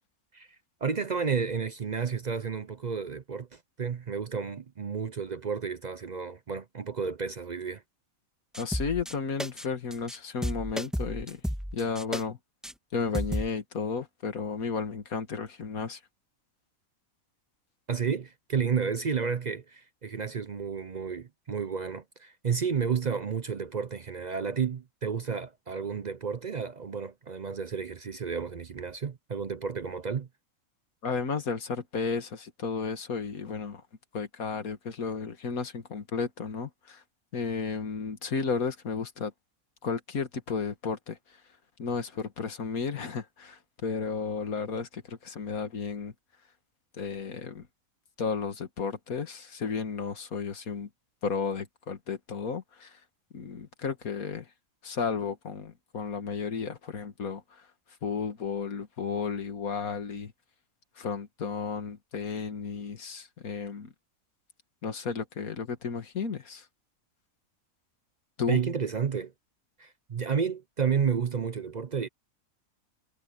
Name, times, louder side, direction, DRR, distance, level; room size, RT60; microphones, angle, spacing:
voice 1, 0.8-7.8 17.9-30.3 68.5-69.3 69.8-72.1, right 6 dB, 45° right, 0.5 m, -31 dB
voice 2, 8.5-11.4 11.7-12.4 12.9-16.0 31.0-33.8 34.1-37.0 37.3-39.3 39.8-41.4 41.8-46.1 46.9-47.7 48.2-50.9 51.2-53.0 53.3-54.5 54.8-57.7 58.0-60.3 61.0-63.9 64.8-66.7 68.4-68.6, left 5 dB, 85° left, 2.2 m, -33 dB
sound 1, 8.5-9.1 9.4-9.7 9.9-10.2 10.4-12.2 12.6-12.7 13.1-13.5, equal, ahead, 1.6 m, -32 dB
omnidirectional pair, 1.5 m